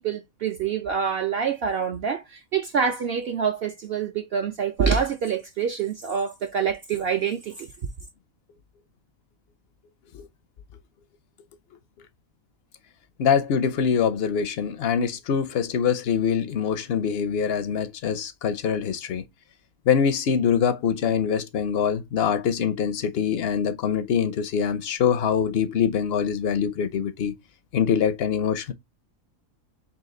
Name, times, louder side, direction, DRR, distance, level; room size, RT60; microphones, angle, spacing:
voice 1, 0.0-7.7, right 6 dB, 60° right, 0.6 m, -26 dB
voice 2, 13.2-19.2 19.9-27.3 27.7-28.7, left 7 dB, 65° left, 0.6 m, -24 dB
4.0 x 2.8 x 3.7 m
omnidirectional pair, 1.4 m